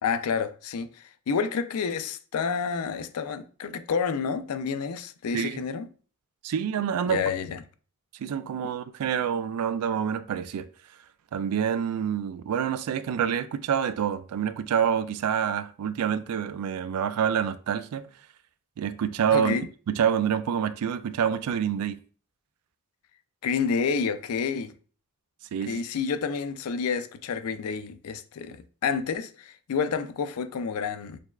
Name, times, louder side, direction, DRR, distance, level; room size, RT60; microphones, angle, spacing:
voice 1, 0.0-5.9 7.1-7.6 19.3-19.7 23.4-24.7 25.7-31.2, left 6 dB, 75° left, 0.4 m, -29 dB
voice 2, 6.4-7.2 8.2-10.7 11.3-18.1 18.8-19.5 19.9-22.0 25.5-25.8, right 8 dB, 80° right, 0.3 m, -27 dB
6.4 x 2.3 x 2.3 m
head